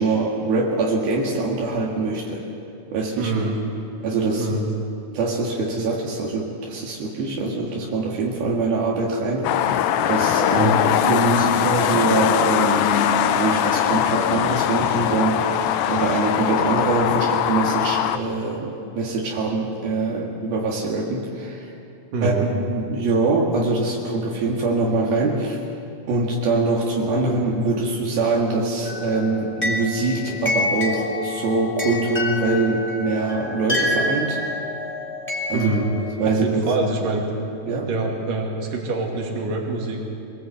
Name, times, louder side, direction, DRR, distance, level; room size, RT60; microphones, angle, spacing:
voice 1, 0.0-2.5 2.9-3.3 4.0-4.5 5.1-9.7 10.1-10.7 11.0-21.7 22.2-25.6 26.1-34.4 35.5-35.7 36.2-36.6 37.6-37.9, right 3 dB, 75° right, -2 dB, 3.8 m, -23 dB
voice 2, 3.2-3.6 4.4-4.7 10.5-10.8 22.1-22.5 35.5-35.9 36.4-37.3 37.9-40.0, right 3 dB, 60° right, 1 dB, 4.0 m, -25 dB
sound 1, 9.4-18.2, left 10 dB, 75° left, 2.1 m, -21 dB
sound 2, 28.8-36.1, left 2 dB, 5° left, 2.7 m, -28 dB
24.5 x 19.0 x 8.3 m, 2.6 s
omnidirectional pair, 4.3 m